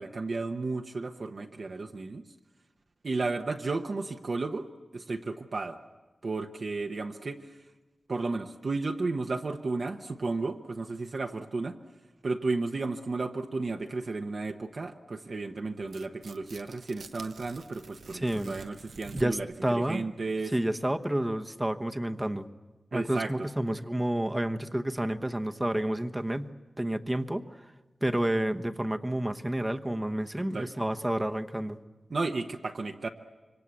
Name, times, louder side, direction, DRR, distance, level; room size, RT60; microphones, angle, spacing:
voice 1, 0.0-2.2 3.0-4.7 4.9-5.8 6.2-7.4 8.1-11.7 12.2-20.5 22.9-23.3 30.5-30.7 32.1-33.1, right 3 dB, 50° right, 4 dB, 1.0 m, -33 dB
Tearing, 15.8-19.6, right 5 dB, 90° right, 0.8 m, -48 dB
voice 2, 18.1-18.5 19.1-20.0 20.5-22.4 22.9-27.4 28.0-31.8, right 1 dB, 10° right, 7 dB, 0.9 m, -30 dB
26.0 x 24.5 x 8.3 m, 1.2 s
wide cardioid pair, 130°, 0 cm